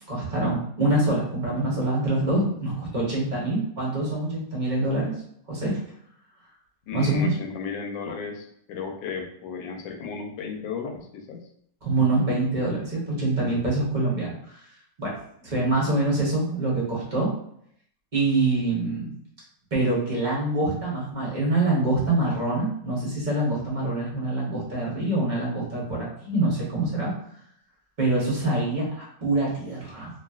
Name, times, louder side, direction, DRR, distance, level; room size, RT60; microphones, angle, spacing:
voice 1, 0.1-5.1 5.5-5.8 6.9-7.3 11.8-14.5 15.0-15.2 15.4-17.3 18.1-19.2 19.7-27.1 28.0-30.1, right 2 dB, 35° right, -5 dB, 0.8 m, -25 dB
voice 2, 6.9-11.4, left 5 dB, 90° left, 3 dB, 1.3 m, -34 dB
3.0 x 2.6 x 2.3 m, 0.69 s
omnidirectional pair, 1.9 m